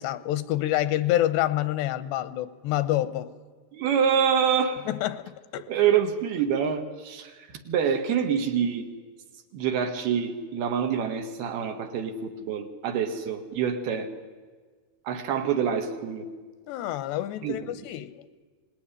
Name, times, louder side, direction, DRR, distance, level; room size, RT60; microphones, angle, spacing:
voice 1, 0.0-3.3 4.9-5.7 16.7-18.3, left 14 dB, 85° left, 3.1 m, -27 dB
voice 2, 3.7-4.8 5.7-8.9 9.5-14.1 15.1-16.3 17.4-17.6, right 7 dB, 70° right, 3.6 m, -26 dB
25.0 x 19.5 x 9.9 m
omnidirectional pair, 4.8 m